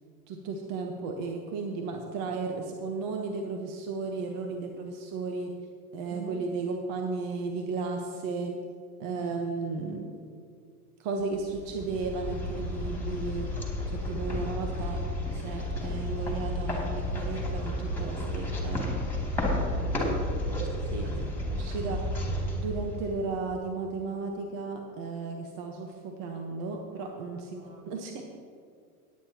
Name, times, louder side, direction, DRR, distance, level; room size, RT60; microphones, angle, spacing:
voice 1, 0.3-5.5 5.9-8.6 9.0-10.1 11.0-13.5 13.9-15.0 15.3-18.9 20.8-21.1 21.5-22.0 22.5-28.2, right 4 dB, 45° right, 2 dB, 1.2 m, -34 dB
voice 2, 6.1-6.4 19.3-20.6 21.0-21.1 27.3-28.0, right 6 dB, 70° right, 1 dB, 2.2 m, -47 dB
sound 1, 11.4-23.5, left 1 dB, 5° left, 2.7 m, -32 dB
17.0 x 9.5 x 3.0 m, 2.2 s
hypercardioid pair, 110°, 45 cm